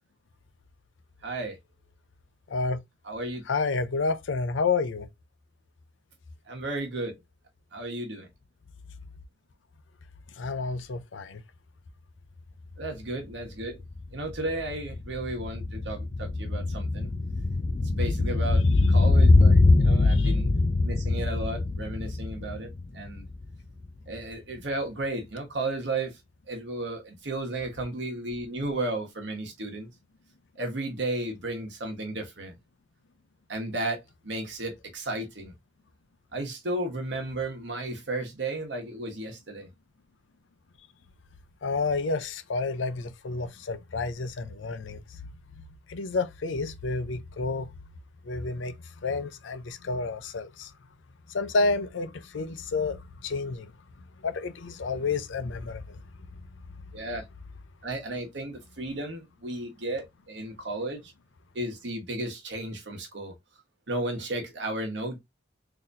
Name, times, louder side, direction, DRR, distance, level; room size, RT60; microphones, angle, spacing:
voice 1, 1.2-1.6 3.0-3.4 6.5-7.2 7.7-8.3 12.8-13.8 14.1-17.1 18.0-20.5 20.8-23.3 24.1-26.2 26.5-29.9 30.5-32.5 33.5-35.5 36.3-39.7 56.9-57.2 57.8-61.1 61.5-63.3 63.9-65.2, right 2 dB, 70° right, 1.3 m, -34 dB
voice 2, 3.5-5.1 10.4-11.4 20.1-20.3 41.6-45.0 45.9-47.7 48.2-48.8 49.0-50.7 51.3-53.7 54.2-56.0, left 4 dB, 80° left, 0.6 m, -30 dB
sound 1, 12.8-12.9 13.2-23.5 23.8-23.9, left 2 dB, 30° left, 0.4 m, -23 dB
4.0 x 2.8 x 2.6 m
head